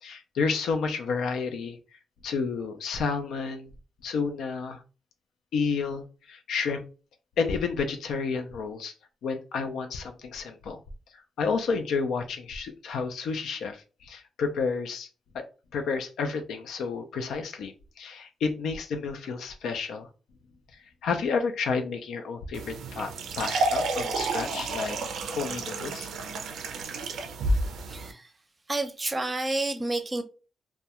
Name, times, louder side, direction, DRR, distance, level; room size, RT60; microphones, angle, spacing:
voice 1, 0.0-1.8 2.2-3.7 4.0-4.8 5.5-6.8 7.4-8.9 9.2-10.8 11.4-15.1 15.3-15.4 15.7-20.1 21.0-25.0 25.3-26.1, left 5 dB, 85° left, 0.4 m, -30 dB
sound 1, 22.5-28.1, right 2 dB, 80° right, 0.4 m, -30 dB
voice 2, 27.8-28.3 28.7-30.2, right 2 dB, 25° right, 0.6 m, -30 dB
2.3 x 2.2 x 2.8 m
cardioid pair, 75°, 0 cm